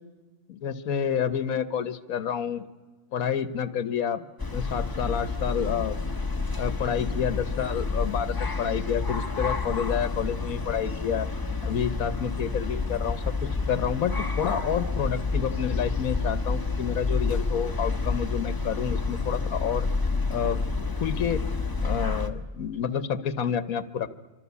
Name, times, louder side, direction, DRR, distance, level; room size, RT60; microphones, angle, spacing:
voice 1, 0.5-2.7 3.1-6.0 6.6-11.3 11.6-19.9 20.3-21.4 21.8-24.1, left 8 dB, 80° left, 13 dB, 1.5 m, -29 dB
sound 1, 4.4-22.3, left 4 dB, 15° left, 1.2 m, -29 dB
25.5 x 25.0 x 8.4 m, 1.3 s
omnidirectional pair, 1.5 m